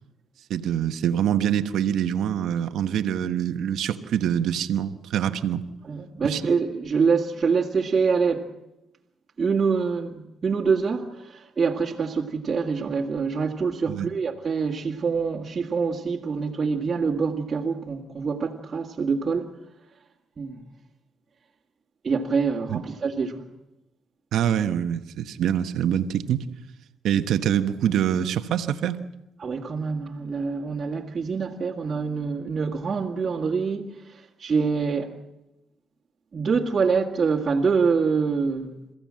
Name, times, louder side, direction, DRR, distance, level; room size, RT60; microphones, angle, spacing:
voice 1, 0.5-5.6 6.2-6.4 13.9-14.1 22.7-22.8 24.3-26.4 27.0-29.0, right 9 dB, 75° right, 1.2 m, -25 dB
voice 2, 5.8-8.5 9.4-19.5 20.4-20.6 22.0-23.4 29.4-35.1 36.3-38.8, right 5 dB, 40° right, 2.0 m, -25 dB
28.5 x 15.5 x 7.6 m
cardioid pair, 90°, 0 cm